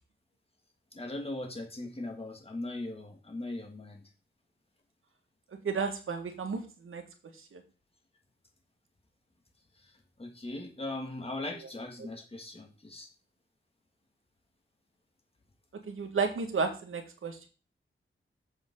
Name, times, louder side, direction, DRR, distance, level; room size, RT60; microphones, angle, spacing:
voice 1, 0.9-4.0 10.2-13.1, left 2 dB, 30° left, 2 dB, 2.3 m, -39 dB
voice 2, 5.6-7.0 7.3-7.6 12.0-12.1 15.8-17.5, right 5 dB, 80° right, 4 dB, 1.9 m, -33 dB
7.3 x 7.2 x 3.9 m, 0.35 s
wide cardioid pair, 85°, 21 cm